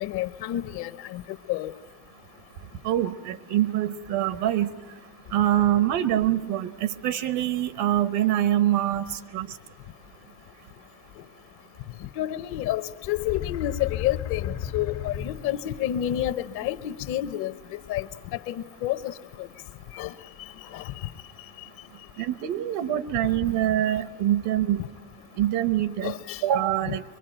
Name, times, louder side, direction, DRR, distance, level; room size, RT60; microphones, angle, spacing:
voice 1, 0.0-1.2 1.5-1.7 12.2-17.5 17.9-18.1 18.5-19.1 20.0-20.1 20.7-20.8 26.0-26.4, left 13 dB, 65° left, 0.9 m, -29 dB
voice 2, 2.8-4.7 5.3-9.5 22.2-24.8 25.4-26.1 26.4-27.0, right 12 dB, 80° right, 1.0 m, -24 dB
sound 1, 13.0-15.8, left 10 dB, 85° left, 1.6 m, -34 dB
24.5 x 24.0 x 9.0 m
cardioid pair, 165°, 41 cm